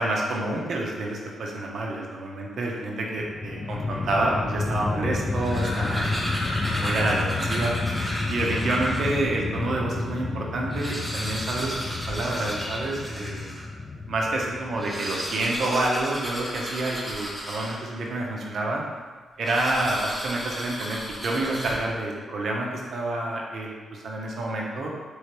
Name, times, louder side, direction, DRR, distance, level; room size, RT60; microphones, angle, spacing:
voice 1, 0.0-6.2 6.7-7.7 8.3-13.5 14.1-18.8 19.4-24.9, right 2 dB, 65° right, -2 dB, 0.7 m, -28 dB
sound 1, 3.1-15.4, left 3 dB, 35° left, 0.3 m, -31 dB
sound 2, 5.3-9.3 9.9-10.0 10.2-10.3 10.6-13.7 14.7-18.1 19.4-22.1, equal, 10° right, 0.9 m, -34 dB
3.2 x 3.1 x 2.9 m, 1.5 s
hypercardioid pair, 45°, 0 cm